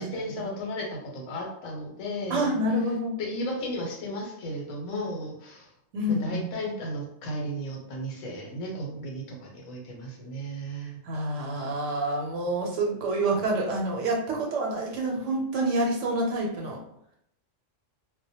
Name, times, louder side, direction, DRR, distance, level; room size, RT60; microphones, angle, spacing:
voice 1, 0.0-2.6 3.2-5.7 6.1-11.0, equal, 85° left, -1 dB, 1.0 m, -34 dB
voice 2, 2.3-3.1 5.9-6.4 11.0-16.8, right 1 dB, 80° right, 0 dB, 0.9 m, -27 dB
2.1 x 2.1 x 2.7 m, 0.74 s
omnidirectional pair, 1.3 m